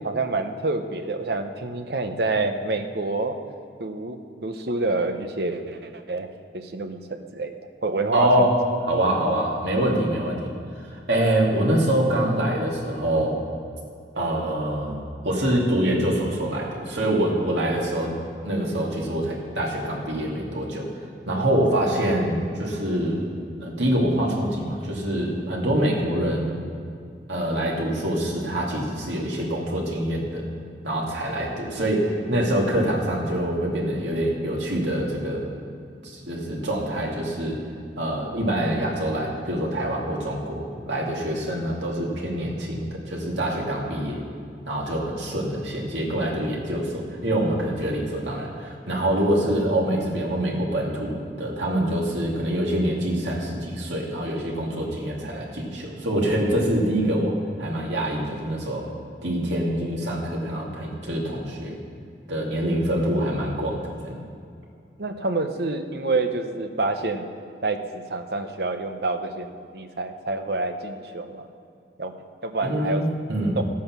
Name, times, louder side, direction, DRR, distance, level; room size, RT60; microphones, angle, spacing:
voice 1, 0.0-3.4 3.8-6.3 6.5-7.5 7.8-8.5 65.0-67.3 67.6-71.5 72.0-72.1 72.4-73.1 73.6-73.7, right 3 dB, 65° right, 7 dB, 0.9 m, -27 dB
voice 2, 8.1-8.5 8.8-10.5 10.8-13.4 14.1-18.2 18.4-20.9 21.3-23.3 23.6-26.6 27.3-30.4 30.8-35.5 36.0-37.6 38.0-44.2 44.6-58.9 59.2-61.8 62.3-64.2 72.6-73.6, right 1 dB, 85° right, -2 dB, 2.5 m, -25 dB
14.0 x 8.5 x 6.1 m, 2.4 s
head